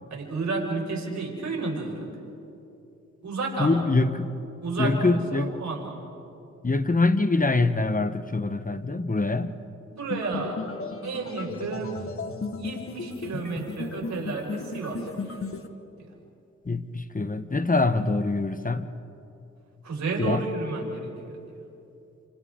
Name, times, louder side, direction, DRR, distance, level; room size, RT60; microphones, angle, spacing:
voice 1, 0.1-2.1 3.2-3.8 4.6-5.9 9.9-10.7 11.0-12.1 12.6-15.3 16.0-16.1 19.8-21.4, right 3 dB, 70° right, -2 dB, 5.7 m, -31 dB
voice 2, 3.6-4.4 4.8-5.5 6.6-9.6 16.6-18.9 20.2-20.4, left 3 dB, 25° left, 10 dB, 1.1 m, -24 dB
sound 1, 10.1-15.7, left 4 dB, 45° left, 1.6 m, -35 dB
29.0 x 27.5 x 3.8 m, 2.8 s
cardioid pair, 45°, 30 cm